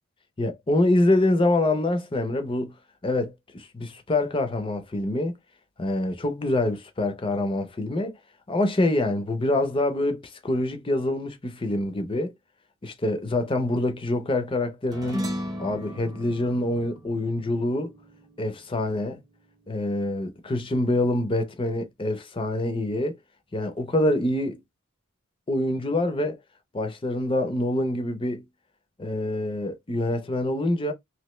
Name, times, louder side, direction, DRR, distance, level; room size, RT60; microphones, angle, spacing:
voice 1, 0.4-2.7 3.0-5.4 5.8-8.1 8.5-12.3 12.8-15.3 15.6-17.9 18.4-19.2 19.7-23.2 23.5-24.6 25.5-26.4 26.7-28.4 29.0-30.9, left 1 dB, 25° left, 0.5 m, -25 dB
sound 1, 14.9-19.6, equal, 15° right, 0.6 m, -36 dB
3.1 x 2.6 x 3.0 m
head